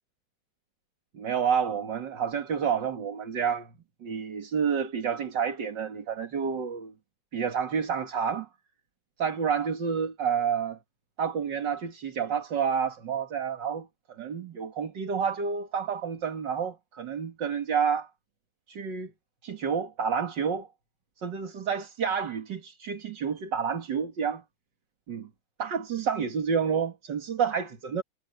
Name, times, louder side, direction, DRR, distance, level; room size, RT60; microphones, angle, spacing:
voice 1, 1.1-3.7 4.0-6.9 7.3-8.5 9.2-10.8 11.2-18.1 18.7-19.1 19.4-20.7 21.2-24.4 25.1-25.3 25.6-28.0, right 6 dB, 75° right, 2.6 m, -29 dB
omnidirectional pair, 2.0 m